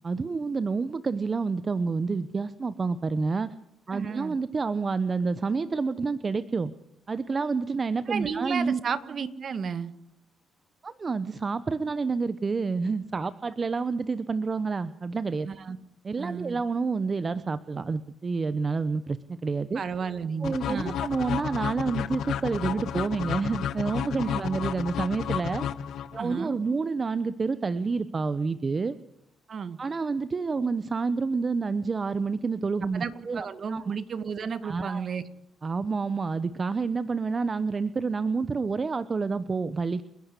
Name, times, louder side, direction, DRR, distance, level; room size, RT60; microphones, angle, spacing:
voice 1, 0.0-3.5 3.9-6.7 7.1-8.8 10.8-15.5 16.0-19.8 20.4-25.7 26.1-29.0 29.8-33.8 34.6-35.1 35.6-40.0, right 4 dB, 35° right, 14 dB, 0.9 m, -29 dB
voice 2, 3.9-4.4 8.1-9.9 15.5-15.8 16.2-16.6 19.7-21.0 24.2-24.4 26.2-26.6 29.5-29.8 32.9-35.2, right 6 dB, 50° right, 12 dB, 1.8 m, -33 dB
sound 1, 20.4-26.4, left 9 dB, 75° left, 1.2 m, -31 dB
29.5 x 11.0 x 8.3 m, 0.81 s
cardioid pair, 90°, 0 cm